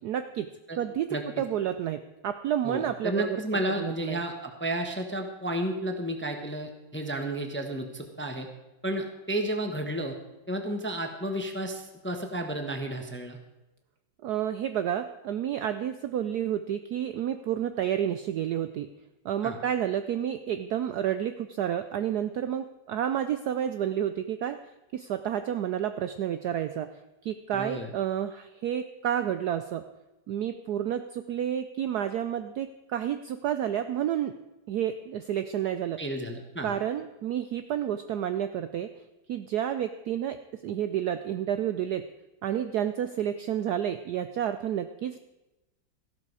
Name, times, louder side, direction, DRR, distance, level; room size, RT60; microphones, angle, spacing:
voice 1, 0.0-0.5 0.8-3.4 3.8-4.2 14.2-18.9 19.2-24.6 24.9-26.9 27.2-29.8 30.3-34.3 34.7-36.0 36.6-38.9 39.3-40.4 40.6-42.0 42.4-45.2, right 10 dB, 75° right, 10 dB, 0.9 m, -30 dB
voice 2, 1.1-1.4 2.6-8.5 8.8-10.2 10.5-13.4 19.4-19.6 27.5-27.9 36.0-36.7, right 1 dB, 10° left, 4 dB, 0.8 m, -32 dB
14.0 x 12.0 x 4.8 m, 1.0 s
omnidirectional pair, 2.2 m